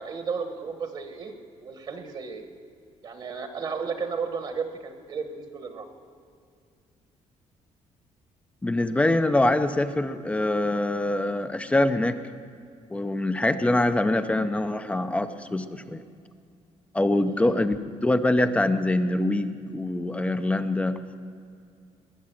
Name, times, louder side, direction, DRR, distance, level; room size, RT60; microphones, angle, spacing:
voice 1, 0.0-1.3 1.6-2.5 3.0-5.9 17.3-17.6, right 5 dB, 40° right, 6 dB, 1.2 m, -33 dB
voice 2, 8.6-12.2 12.9-16.0 16.9-21.0, left 1 dB, 10° left, 10 dB, 0.5 m, -24 dB
21.0 x 7.4 x 7.5 m, 2.3 s
cardioid pair, 150°, 12 cm